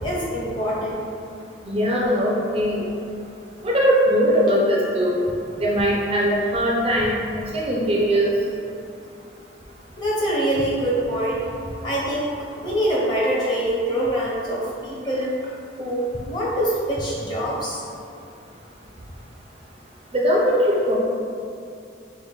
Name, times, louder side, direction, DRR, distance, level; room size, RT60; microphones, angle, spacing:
voice 1, 0.0-1.1 10.0-11.5 11.8-15.3 15.8-17.8, right 1 dB, 25° left, -6 dB, 0.7 m, -24 dB
voice 2, 1.6-2.9 3.6-5.2 5.6-7.2 7.5-8.3 20.1-21.0, equal, 30° right, -3 dB, 0.4 m, -20 dB
5.4 x 2.1 x 3.1 m, 2.5 s
head